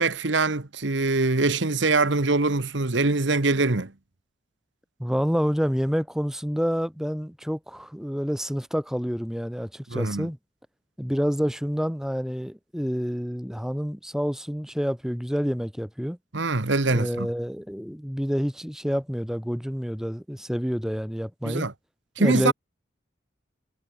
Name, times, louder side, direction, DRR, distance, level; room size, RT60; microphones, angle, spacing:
voice 1, 0.0-3.9 9.9-10.3 16.3-17.3 21.4-21.7 22.2-22.5, right 3 dB, 75° right, 1.4 m, -23 dB
voice 2, 5.0-10.4 11.0-16.2 16.9-21.7 22.2-22.5, equal, 5° right, 2.5 m, -28 dB
head